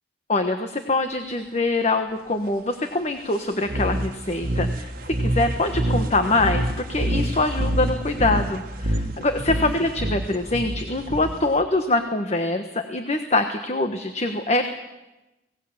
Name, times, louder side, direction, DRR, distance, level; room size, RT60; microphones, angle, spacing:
voice 1, 0.3-4.9 5.2-14.7, left 2 dB, 40° left, 7 dB, 1.3 m, -24 dB
sound 1, 3.6-11.6, right 1 dB, 55° right, 1.6 m, -27 dB
24.5 x 19.0 x 7.3 m, 1.0 s
head